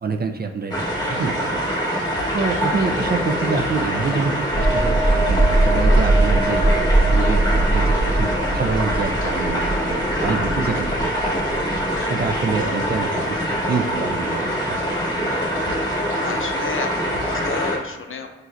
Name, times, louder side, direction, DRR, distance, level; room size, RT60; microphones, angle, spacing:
voice 1, 0.0-0.7 1.1-1.8 2.3-6.7 7.0-11.6 12.1-13.2 13.5-14.8 15.7-15.8, right 4 dB, 35° right, 5 dB, 0.4 m, -27 dB
sound 1, 0.7-17.8, equal, 15° left, 1.3 m, -24 dB
sound 2, 4.5-12.0 12.3-12.5, right 2 dB, 10° right, 1.4 m, -20 dB
voice 2, 16.2-18.3, left 5 dB, 45° left, 6 dB, 0.5 m, -31 dB
4.5 x 3.2 x 2.6 m, 1.2 s
supercardioid pair, 45°, 29 cm